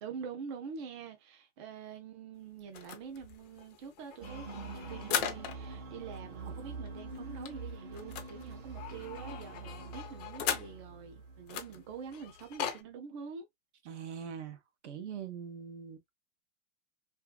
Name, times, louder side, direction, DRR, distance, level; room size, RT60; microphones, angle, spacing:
voice 1, 0.0-13.5, right 6 dB, 25° right, 0.4 m, -45 dB
sound 1, 2.7-5.8 6.1-6.2 6.5-6.6 6.9-11.0 11.5-12.8, left 9 dB, 35° left, 0.5 m, -39 dB
sound 2, 4.2-12.3, right 4 dB, 40° right, 1.0 m, -45 dB
voice 2, 13.8-14.6 14.8-16.1, right 7 dB, 70° right, 0.9 m, -42 dB
2.6 x 2.4 x 2.2 m
hypercardioid pair, 150°, 36 cm